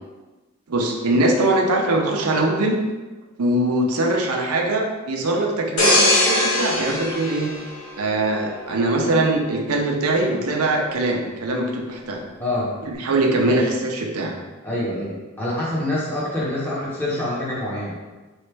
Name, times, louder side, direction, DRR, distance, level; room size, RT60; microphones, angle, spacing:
voice 1, 0.7-2.8 3.4-7.5 8.0-12.2 12.9-14.3, right 2 dB, 90° right, 1 dB, 0.6 m, -22 dB
sound 1, 5.8-8.5 8.9-9.1, left 2 dB, 80° left, 1.3 m, -21 dB
voice 2, 12.4-12.7 13.4-13.7 14.6-18.0, left 1 dB, 10° left, -7 dB, 1.0 m, -26 dB
4.2 x 3.1 x 3.3 m, 1.2 s
head